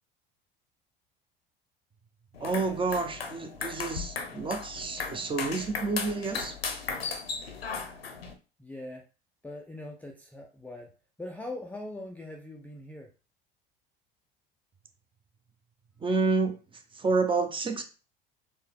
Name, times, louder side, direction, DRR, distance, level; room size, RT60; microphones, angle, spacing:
sound 1, 2.3-8.3, left 5 dB, 85° left, 0.8 m, -36 dB
voice 1, 2.4-6.6 16.0-17.8, right 4 dB, 15° right, 0.9 m, -29 dB
voice 2, 8.6-9.0 9.4-13.1, left 1 dB, 5° left, 0.5 m, -41 dB
4.5 x 3.3 x 3.6 m
figure-of-eight pair, 75°, 30 cm